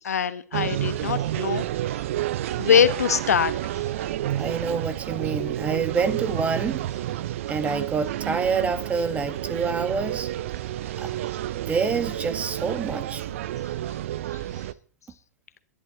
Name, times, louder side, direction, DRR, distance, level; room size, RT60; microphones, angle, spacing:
voice 1, 0.0-2.1 2.6-3.8, left 7 dB, 70° left, 1.3 m, -23 dB
sound 1, 0.5-14.7, right 13 dB, 55° right, 0.8 m, -30 dB
voice 2, 4.3-6.9 7.5-10.3 11.0-11.2 11.7-13.2, right 5 dB, 15° right, 1.6 m, -27 dB
22.0 x 11.0 x 4.0 m
figure-of-eight pair, 110°, 9 cm